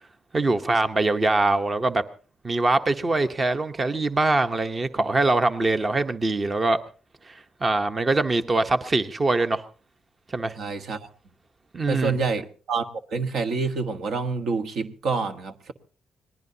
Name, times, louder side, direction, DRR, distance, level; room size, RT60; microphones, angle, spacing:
voice 1, 0.3-2.0 2.4-6.8 7.3-7.4 7.6-9.6 10.3-10.5 11.7-12.2, right 2 dB, 30° right, 0.9 m, -23 dB
voice 2, 10.6-11.1 11.9-12.9 13.1-15.7, right 4 dB, 70° right, 1.3 m, -27 dB
26.0 x 19.5 x 2.8 m
cardioid pair, 90°, 0 cm